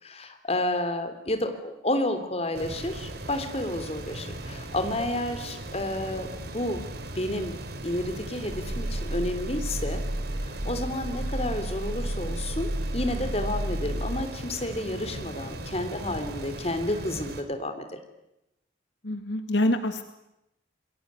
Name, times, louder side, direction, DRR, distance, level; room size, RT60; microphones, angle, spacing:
voice 1, 0.0-6.3 6.5-6.8 7.1-10.0 10.6-18.0, left 1 dB, 30° left, 7 dB, 3.3 m, -30 dB
sound 1, 2.5-17.4, right 1 dB, 55° right, 3.2 m, -38 dB
Growling, 8.4-14.3, right 1 dB, 90° right, 1.6 m, -32 dB
voice 2, 19.0-20.0, left 1 dB, 65° left, 8 dB, 2.1 m, -27 dB
29.0 x 21.5 x 9.6 m, 0.88 s
head